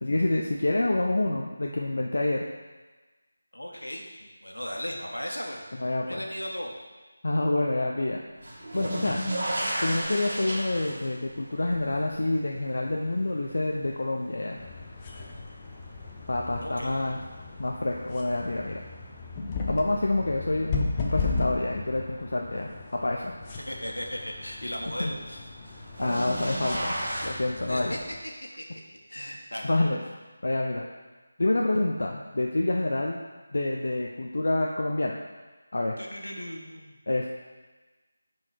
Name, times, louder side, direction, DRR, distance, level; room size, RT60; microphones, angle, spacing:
voice 1, 0.0-2.5 5.8-6.2 7.2-8.2 8.7-9.2 9.8-14.6 16.3-17.2 17.6-18.8 19.7-22.7 23.0-23.3 25.0-25.1 26.0-26.9 27.2-27.9 29.6-30.0 30.4-30.9 31.4-33.2 33.5-35.2 35.7-36.0 37.1-37.3, left 2 dB, 60° left, 0 dB, 0.7 m, -27 dB
voice 2, 3.5-5.6 6.0-6.7 16.6-16.9 23.6-25.4 27.7-28.6 29.1-29.7 36.0-36.9, equal, 80° left, 0 dB, 1.6 m, -36 dB
sound 1, 8.4-15.4 15.9-16.6 18.2-18.3 19.8-19.9 25.6-27.3, right 1 dB, 55° right, 2.4 m, -34 dB
sound 2, 14.6-28.2, left 4 dB, 20° left, 0.8 m, -36 dB
9.9 x 4.8 x 4.4 m, 1.3 s
figure-of-eight pair, 160°, 0 cm